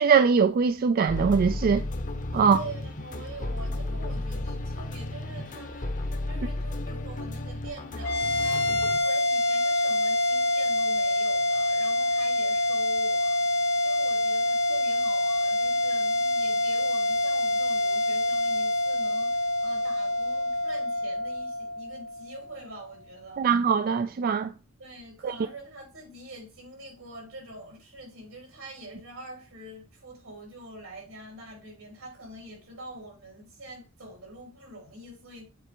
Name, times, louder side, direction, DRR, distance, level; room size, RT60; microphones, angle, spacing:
voice 1, 0.0-1.8 2.3-2.6 23.4-24.5 25.2-25.3, right 6 dB, 45° right, 0.3 m, -22 dB
sound 1, 1.1-9.0, left 1 dB, 40° left, 0.8 m, -33 dB
voice 2, 2.3-5.9 6.2-23.5 24.8-35.4, right 1 dB, 85° right, 3.6 m, -45 dB
sound 2, 8.0-22.6, left 1 dB, 55° left, 1.1 m, -26 dB
7.5 x 4.3 x 4.5 m
head